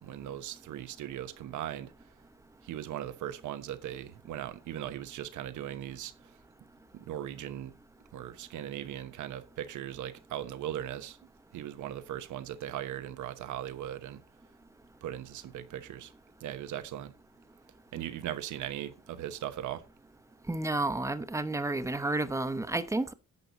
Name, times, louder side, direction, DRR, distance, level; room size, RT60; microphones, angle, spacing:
voice 1, 0.0-1.9 2.6-6.1 6.9-7.7 8.1-11.2 11.5-14.2 15.0-16.1 16.4-17.1 17.9-19.8, right 11 dB, 80° right, 1.0 m, -38 dB
voice 2, 20.5-23.1, right 2 dB, 10° right, 0.9 m, -31 dB
11.0 x 6.8 x 3.9 m
cardioid pair, 90°, 30 cm